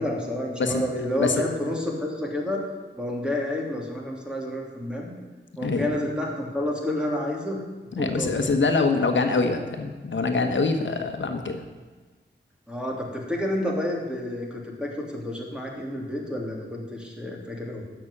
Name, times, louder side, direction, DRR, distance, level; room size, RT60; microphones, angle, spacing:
voice 1, 0.0-2.6 2.9-5.1 5.6-7.6 8.0-8.4 12.7-17.8, left 1 dB, 5° right, -1 dB, 3.0 m, -29 dB
voice 2, 7.9-11.6, left 3 dB, 75° left, 6 dB, 1.3 m, -24 dB
14.0 x 6.2 x 9.9 m, 1.3 s
wide cardioid pair, 125°, 19 cm